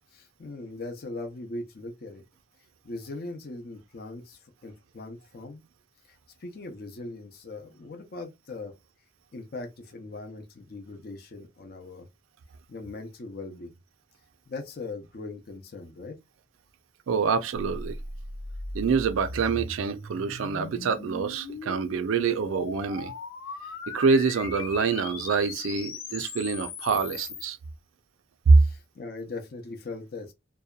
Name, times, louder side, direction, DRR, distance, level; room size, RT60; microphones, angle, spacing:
voice 1, 0.1-2.2 2.8-5.6 6.1-8.7 9.3-12.1 12.7-13.8 14.5-16.2 28.5-30.3, left 2 dB, 50° left, 0.5 m, -40 dB
voice 2, 17.1-18.0 18.7-23.1 23.9-27.6 28.5-28.6, right 5 dB, 80° right, 0.4 m, -25 dB
sound 1, 17.5-27.5, left 3 dB, 90° left, 0.7 m, -39 dB
2.7 x 2.1 x 2.3 m
head